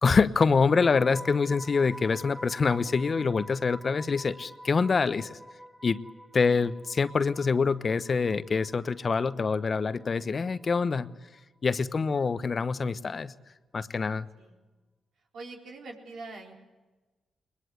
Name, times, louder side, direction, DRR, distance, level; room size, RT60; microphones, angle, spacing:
voice 1, 0.0-5.4 5.8-6.0 6.3-11.1 11.6-13.3 13.7-14.3, left 5 dB, 50° left, 14 dB, 0.9 m, -25 dB
sound 1, 0.7-10.8 11.1-11.4, equal, 10° right, 2.2 m, -47 dB
voice 2, 12.1-12.5 14.4-14.5 15.3-16.5, right 3 dB, 75° right, 0 dB, 4.2 m, -45 dB
21.5 x 20.5 x 8.0 m, 1.2 s
supercardioid pair, 50°, 0 cm